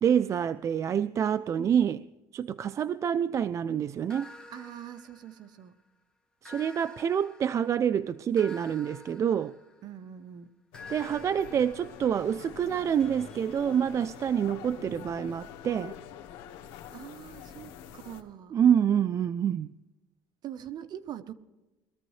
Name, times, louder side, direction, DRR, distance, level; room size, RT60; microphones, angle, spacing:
voice 1, 0.0-2.0 2.3-4.3 6.4-9.5 10.9-16.0 18.5-19.7, right 8 dB, 35° right, 0.3 m, -27 dB
sound 1, 4.1-5.8 6.4-10.1 10.7-14.5, left 2 dB, 10° left, 1.9 m, -51 dB
voice 2, 4.5-5.8 9.8-10.5 16.9-18.6 20.4-21.3, right 10 dB, 50° right, 0.9 m, -43 dB
sound 2, 10.7-18.2, left 9 dB, 85° left, 1.6 m, -45 dB
21.5 x 14.0 x 3.2 m
cardioid pair, 125°, 9 cm